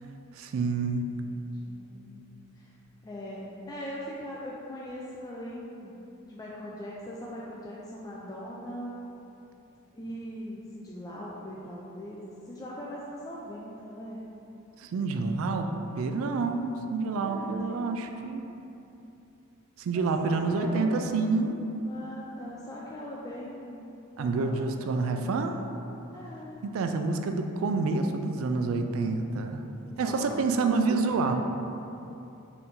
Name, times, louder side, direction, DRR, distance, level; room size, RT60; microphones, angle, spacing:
voice 1, 0.3-1.1 14.8-18.4 19.8-21.6 24.2-25.6 26.6-29.6 30.0-31.3, right 3 dB, 70° right, 6 dB, 0.3 m, -28 dB
voice 2, 1.7-2.3 2.5-2.7 3.0-6.0 6.3-9.0 9.9-14.2 17.2-18.3 19.9-23.9 24.2-25.4 26.1-26.6 29.8-31.3, equal, 20° left, -5 dB, 0.3 m, -41 dB
4.3 x 2.7 x 3.7 m, 2.8 s
head